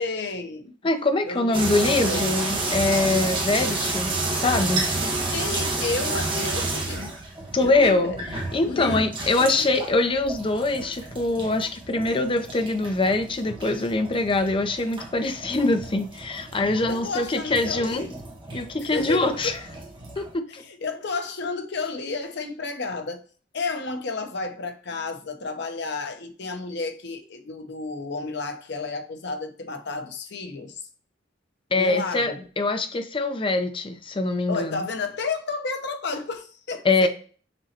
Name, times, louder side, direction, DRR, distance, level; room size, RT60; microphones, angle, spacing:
voice 1, 0.0-0.7 1.3-2.3 5.3-7.1 7.6-8.3 8.7-9.0 9.3-9.8 16.9-18.2 18.8-19.6 20.5-23.2 23.5-30.9 31.7-32.5 34.5-37.1, left 3 dB, 65° left, 0.8 m, -32 dB
voice 2, 0.8-4.9 7.5-8.2 8.5-18.1 18.5-19.5 20.2-20.6 31.7-34.9 36.8-37.1, left 2 dB, 30° left, 0.5 m, -23 dB
sound 1, 1.5-20.3, right 2 dB, 25° right, 1.4 m, -31 dB
6.0 x 3.0 x 2.8 m
head